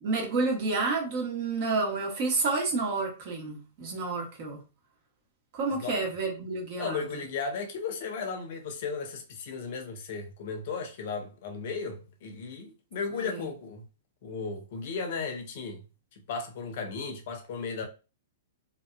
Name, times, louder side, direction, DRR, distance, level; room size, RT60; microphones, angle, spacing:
voice 1, 0.0-4.6 5.5-7.0 13.1-13.4, right 3 dB, 45° right, 1.2 m, -30 dB
voice 2, 6.8-13.8 14.2-15.8 16.3-17.9, left 5 dB, 50° left, 0.6 m, -35 dB
2.7 x 2.6 x 2.2 m
figure-of-eight pair, 105°, 0 cm